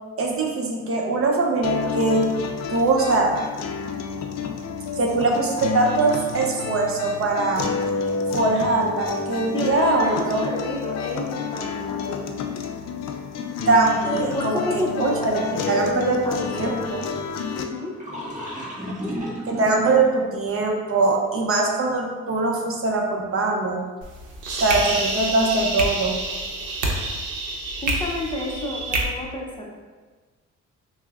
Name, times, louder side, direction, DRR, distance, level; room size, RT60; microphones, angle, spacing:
voice 1, 0.2-2.3 2.7-3.3 5.0-7.7 8.3-10.4 13.7-15.4 15.7-16.2 16.5-17.0 19.5-23.8 24.5-26.2, right 3 dB, 50° right, 0 dB, 0.7 m, -22 dB
sound 1, 1.6-17.6, left 5 dB, 60° left, 0.4 m, -29 dB
voice 2, 9.5-12.3 14.0-17.1 17.6-17.9 27.8-29.8, left 1 dB, 15° left, -2 dB, 0.6 m, -30 dB
sound 2, 9.6-10.4 10.8-10.9 13.6-13.7 15.5-15.6 15.8-15.9 17.6-17.7 18.0-20.1, right 1 dB, 25° right, 1.0 m, -33 dB
sound 3, 24.0-29.0, right 2 dB, 80° right, 0.7 m, -27 dB
6.1 x 2.1 x 2.4 m, 1.4 s
cardioid pair, 90°, 30 cm